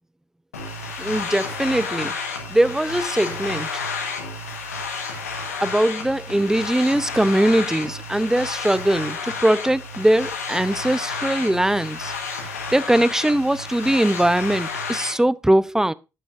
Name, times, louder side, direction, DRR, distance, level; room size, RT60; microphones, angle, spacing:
sound 1, 0.5-15.1, left 4 dB, 90° left, 1.4 m, -31 dB
voice 1, 1.0-3.8 5.6-12.1 12.7-15.9, right 1 dB, 5° right, 0.6 m, -21 dB
17.0 x 6.3 x 2.6 m
hypercardioid pair, 45°, 8 cm